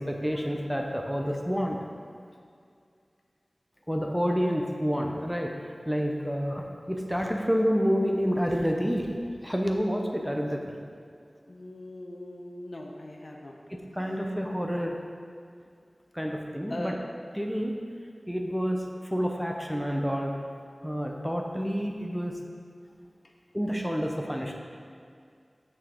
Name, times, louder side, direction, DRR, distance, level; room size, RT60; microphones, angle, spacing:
voice 1, 0.0-1.8 3.9-9.1 9.4-10.8 13.9-15.0 16.1-17.0 17.3-17.8 18.3-20.3 20.8-22.4 23.5-24.6, equal, ahead, 1 dB, 0.7 m, -29 dB
voice 2, 11.5-13.6 16.7-17.0, left 1 dB, 60° left, 0 dB, 0.8 m, -40 dB
6.8 x 6.3 x 3.7 m, 2.3 s
wide cardioid pair, 55°, 0 cm